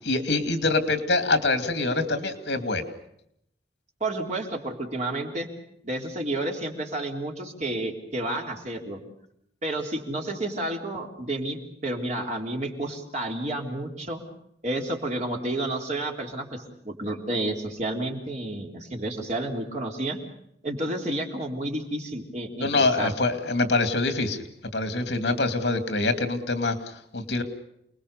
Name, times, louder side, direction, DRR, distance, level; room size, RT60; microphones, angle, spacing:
voice 1, 0.1-2.8 22.6-24.4 24.7-27.4, left 3 dB, 70° left, 8 dB, 2.6 m, -25 dB
voice 2, 4.0-5.5 5.8-9.0 9.6-14.2 14.6-20.2 20.6-22.7 23.0-23.1, right 1 dB, 40° right, 1 dB, 3.6 m, -30 dB
29.0 x 20.5 x 6.8 m, 0.74 s
head